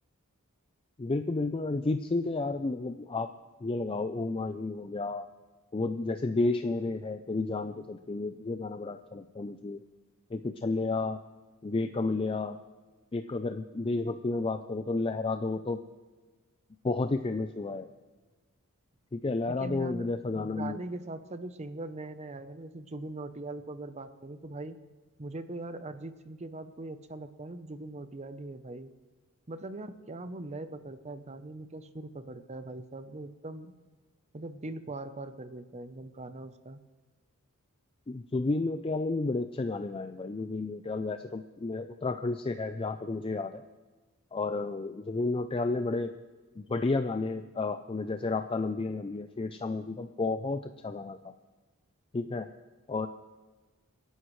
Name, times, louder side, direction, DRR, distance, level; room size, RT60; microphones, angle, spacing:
voice 1, 1.0-3.3 3.6-5.3 5.7-9.8 10.3-11.2 11.6-12.6 13.1-15.8 16.8-17.9 19.1-20.8 38.1-43.6 44.3-46.1 46.6-51.2 52.1-52.5 52.9-53.1, left 3 dB, 25° left, 8 dB, 0.4 m, -31 dB
voice 2, 19.5-24.8 25.2-28.9 29.5-33.7 34.3-36.8, right 2 dB, 30° right, 11 dB, 0.7 m, -41 dB
26.0 x 11.0 x 3.2 m, 1.3 s
head